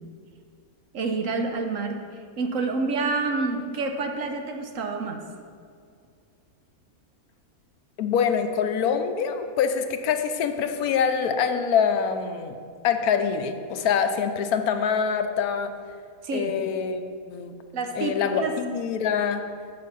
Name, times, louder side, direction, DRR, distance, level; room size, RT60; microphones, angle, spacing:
voice 1, 0.9-2.0 2.4-5.2 16.2-16.5 17.7-18.5, right 3 dB, 65° right, 4 dB, 1.1 m, -28 dB
voice 2, 8.0-12.6 12.8-15.7 16.3-17.6 18.0-19.4, left 7 dB, 80° left, 8 dB, 1.1 m, -25 dB
7.3 x 6.8 x 5.5 m, 2.2 s
omnidirectional pair, 1.6 m